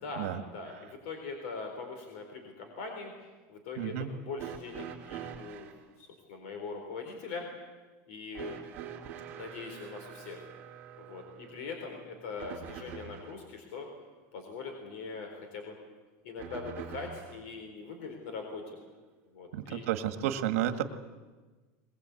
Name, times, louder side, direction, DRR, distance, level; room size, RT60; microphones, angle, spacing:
voice 1, 0.0-3.1 3.5-5.7 6.0-7.5 8.1-8.6 9.3-10.5 11.0-13.9 14.3-15.8 16.2-18.8 19.3-19.9, left 4 dB, 60° left, 4 dB, 4.3 m, -41 dB
voice 2, 3.8-4.1 19.7-20.8, right 11 dB, 75° right, 8 dB, 1.8 m, -31 dB
sound 1, 4.4-5.8 8.3-13.4 16.4-17.5 18.7-18.8 19.8-19.9, right 9 dB, 25° right, 3.1 m, -45 dB
21.0 x 21.0 x 8.5 m, 1.3 s
supercardioid pair, 180°, 8 cm